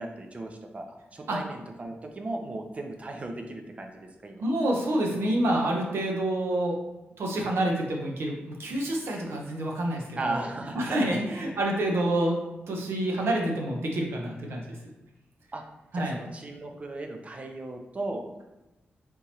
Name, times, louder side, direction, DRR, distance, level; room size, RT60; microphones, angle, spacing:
voice 1, 0.0-4.4 10.2-11.2 15.5-15.6 15.9-18.2, right 2 dB, 35° right, 3 dB, 0.5 m, -36 dB
voice 2, 4.4-6.8 7.2-10.4 10.7-12.4 12.7-14.8 15.9-16.2, right 1 dB, 85° right, 0 dB, 0.7 m, -28 dB
3.6 x 2.9 x 2.8 m, 1.0 s
wide cardioid pair, 135°, 4 cm